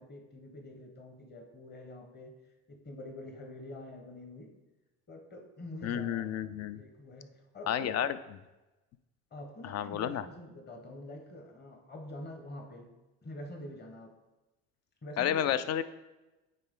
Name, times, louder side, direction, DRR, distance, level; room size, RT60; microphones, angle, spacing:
voice 1, 0.0-2.3 2.7-4.5 5.1-6.3 6.7-8.1 9.3-12.9 13.2-14.2 15.0-15.6, left 1 dB, 25° left, 3 dB, 1.2 m, -46 dB
voice 2, 5.8-6.8 7.7-8.2 9.6-10.2 15.2-15.8, left 10 dB, 45° left, 14 dB, 0.4 m, -31 dB
9.0 x 3.3 x 3.7 m, 1.1 s
supercardioid pair, 90°, 38 cm